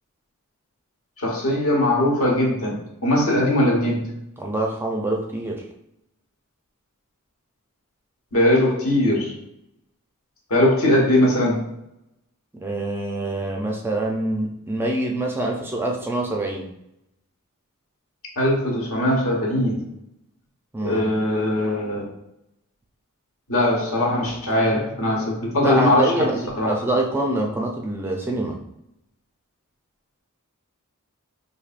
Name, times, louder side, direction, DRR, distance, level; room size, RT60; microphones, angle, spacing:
voice 1, 1.2-4.1 8.3-9.3 10.5-11.6 18.4-19.8 20.8-22.0 23.5-26.3 26.6-26.7, left 1 dB, 70° left, -2 dB, 1.1 m, -20 dB
voice 2, 4.4-5.7 12.6-16.7 20.7-21.0 25.6-28.6, right 2 dB, 10° right, 0 dB, 0.4 m, -25 dB
4.6 x 2.7 x 2.4 m, 0.83 s
head